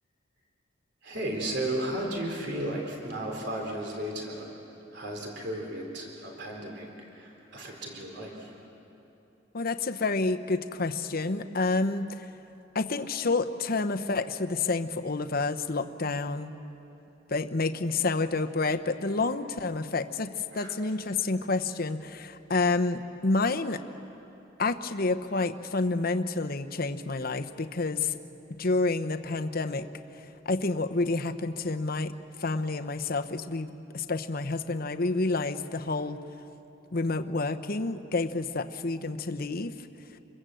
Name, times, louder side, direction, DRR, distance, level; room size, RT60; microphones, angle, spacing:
voice 1, 1.0-4.5 4.9-8.5 20.5-20.7, right 1 dB, 60° right, 0 dB, 3.6 m, -34 dB
voice 2, 9.5-12.2 12.7-16.5 17.3-23.8 24.6-28.2 28.6-29.9 30.5-32.1 32.4-36.2 36.9-39.7, left 3 dB, 50° left, 8 dB, 0.9 m, -29 dB
27.0 x 22.5 x 7.8 m, 2.9 s
head